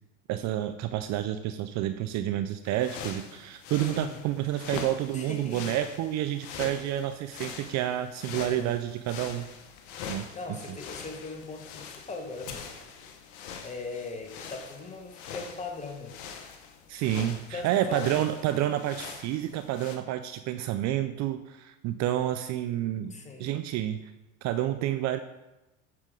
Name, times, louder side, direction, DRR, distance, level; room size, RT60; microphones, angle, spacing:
voice 1, 0.3-9.5 10.1-10.3 16.9-23.1 23.4-24.1 24.4-25.2, right 12 dB, 45° right, 10 dB, 0.4 m, -29 dB
sound 1, 2.6-20.0, left 6 dB, 60° left, 1.1 m, -43 dB
voice 2, 5.1-5.8 8.3-8.8 10.0-12.7 13.6-16.2 17.5-18.2 23.1-23.5, left 3 dB, 15° left, 3 dB, 1.2 m, -40 dB
7.6 x 6.0 x 3.7 m, 1.0 s
hypercardioid pair, 90°, 40 cm